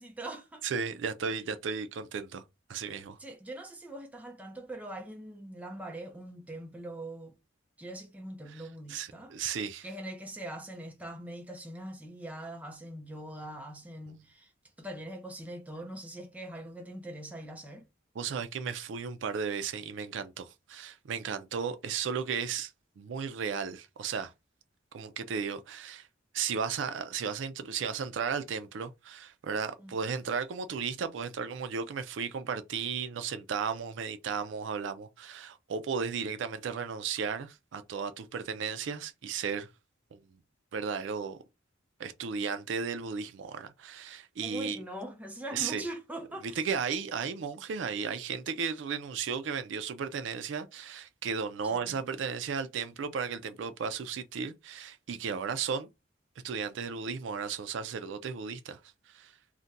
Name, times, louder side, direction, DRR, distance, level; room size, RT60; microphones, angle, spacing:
voice 1, 0.0-0.6 3.2-7.3 7.8-9.3 9.8-14.5 14.8-17.8 29.8-29.9 44.4-46.6 51.6-52.0, right 1 dB, 10° right, 0.5 m, -42 dB
voice 2, 0.6-2.4 2.7-3.2 8.5-8.6 8.9-9.9 18.2-24.3 24.9-26.1 26.3-39.7 40.1-40.2 40.7-41.4 42.0-44.8 45.5-45.8 46.4-55.9 56.4-58.8 59.1-59.3, right 6 dB, 65° right, 0.4 m, -35 dB
2.5 x 2.1 x 3.9 m
head